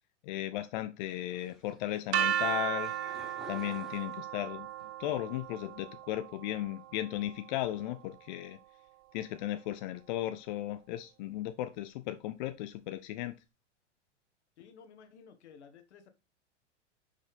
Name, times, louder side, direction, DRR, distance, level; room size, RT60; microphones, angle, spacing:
voice 1, 0.2-2.9 3.5-4.7 5.0-8.6 9.1-13.3, left 14 dB, 40° left, 0.5 m, -36 dB
sound 1, 1.0-4.7 5.1-5.8, equal, ahead, 1.3 m, -53 dB
sound 2, 2.1-8.0, right 10 dB, 60° right, 0.6 m, -36 dB
voice 2, 14.6-16.1, left 6 dB, 65° left, 1.3 m, -54 dB
5.6 x 5.2 x 3.5 m
hypercardioid pair, 105°, 37 cm